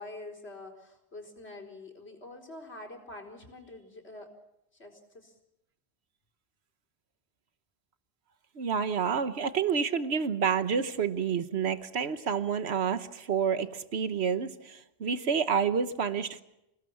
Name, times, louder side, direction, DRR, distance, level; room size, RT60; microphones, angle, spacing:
voice 1, 0.0-4.3 4.7-5.3, left 2 dB, 85° left, 2 dB, 4.7 m, -46 dB
voice 2, 8.6-16.4, right 6 dB, 85° right, 10 dB, 1.4 m, -29 dB
29.0 x 19.0 x 7.2 m, 0.85 s
omnidirectional pair, 1.1 m